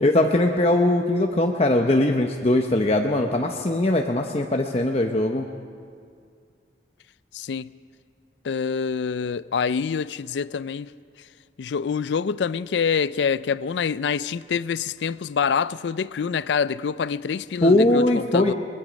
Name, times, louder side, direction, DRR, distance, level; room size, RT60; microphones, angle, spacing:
voice 1, 0.0-5.5 17.6-18.5, left 1 dB, 35° left, 0.8 m, -20 dB
voice 2, 7.3-7.7 8.4-10.9 11.6-18.5, left 6 dB, 75° left, 0.4 m, -26 dB
23.5 x 21.0 x 5.2 m
head